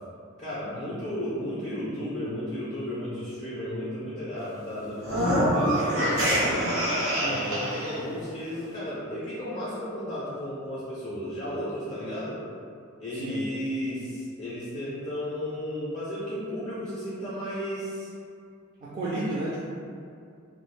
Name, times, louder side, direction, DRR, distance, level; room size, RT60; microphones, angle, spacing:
voice 1, 0.4-6.7 7.2-12.4 13.0-18.1, equal, 30° left, -10 dB, 0.4 m, -34 dB
sound 1, 5.0-8.0, equal, 85° right, 0.8 m, -25 dB
voice 2, 7.2-7.5 13.1-13.5 18.8-19.6, right 2 dB, 40° right, -7 dB, 0.3 m, -32 dB
2.3 x 2.1 x 3.0 m, 2.4 s
head